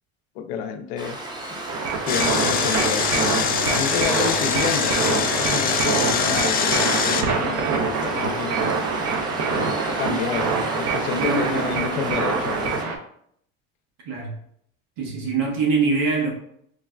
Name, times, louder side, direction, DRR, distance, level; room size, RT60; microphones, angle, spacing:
voice 1, 0.4-1.2 2.1-8.6 9.5-12.8, left 7 dB, 80° left, 8 dB, 0.5 m, -30 dB
Waves surf, 1.0-12.8, right 1 dB, 15° right, 0.6 m, -35 dB
sound 1, 1.7-13.0, right 4 dB, 55° right, 0.6 m, -25 dB
Engine, 2.1-7.2, left 7 dB, 30° left, 0.4 m, -23 dB
voice 2, 10.1-10.4 11.2-11.6 14.0-14.4 15.0-16.3, right 4 dB, 80° right, 0 dB, 1.1 m, -24 dB
4.5 x 2.1 x 2.3 m, 0.67 s
supercardioid pair, 90°, 33 cm